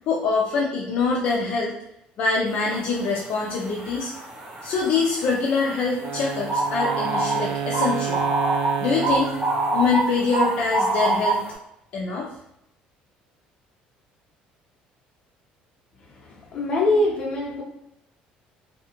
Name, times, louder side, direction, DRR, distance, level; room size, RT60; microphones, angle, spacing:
voice 1, 0.1-1.8 2.2-4.1 4.6-9.3 9.7-11.4 11.9-12.3, left 4 dB, 50° left, 0.4 m, -24 dB
sound 1, 2.6-2.8 3.1-11.5, right 2 dB, 35° right, 1.2 m, -26 dB
Wind instrument woodwind instrument, 6.0-10.2, right 8 dB, 65° right, 0.3 m, -30 dB
voice 2, 16.5-17.6, left 2 dB, 35° left, 0.8 m, -22 dB
2.7 x 2.2 x 2.8 m
cardioid pair, 160°, 3 cm